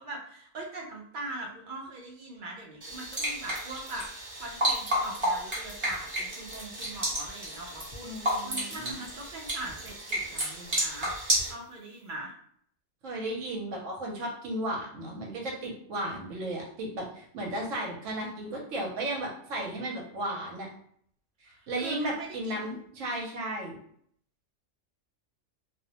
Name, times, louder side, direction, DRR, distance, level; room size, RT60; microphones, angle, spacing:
voice 1, 0.0-12.3 21.5-22.8, right 2 dB, 55° right, 0 dB, 0.6 m, -42 dB
sound 1, 2.8-11.5, right 1 dB, 25° right, 0.9 m, -32 dB
voice 2, 8.0-9.0 13.0-20.7 21.7-23.7, right 1 dB, 75° right, -1 dB, 1.0 m, -34 dB
2.5 x 2.1 x 2.8 m, 0.64 s
omnidirectional pair, 1.4 m